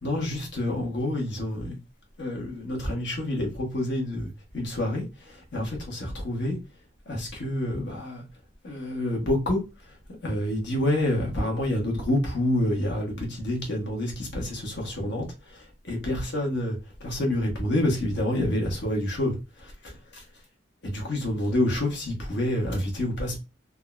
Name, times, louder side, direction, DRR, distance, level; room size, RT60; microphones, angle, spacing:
voice 1, 0.0-1.8 2.2-6.6 7.1-8.2 8.6-9.6 10.2-19.9 20.8-23.4, left 1 dB, 60° left, 1.1 m, -28 dB
3.6 x 2.0 x 2.3 m
head